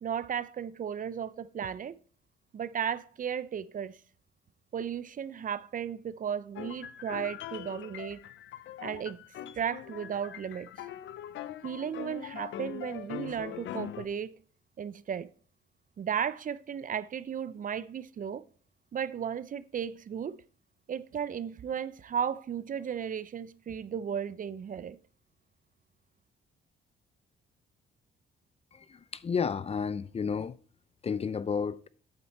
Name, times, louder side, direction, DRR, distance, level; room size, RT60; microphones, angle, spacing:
voice 1, 0.0-1.9 2.5-4.0 4.7-8.2 8.8-9.2 9.6-10.7 11.6-14.3 14.8-15.3 16.0-18.4 18.9-20.4 20.9-25.0, right 8 dB, 45° right, 0.5 m, -35 dB
sound 1, 6.6-14.1, left 11 dB, 70° left, 0.7 m, -42 dB
voice 2, 28.7-30.6 31.0-31.9, left 6 dB, 30° left, 0.5 m, -32 dB
8.9 x 7.6 x 4.2 m
cardioid pair, 90°, 20 cm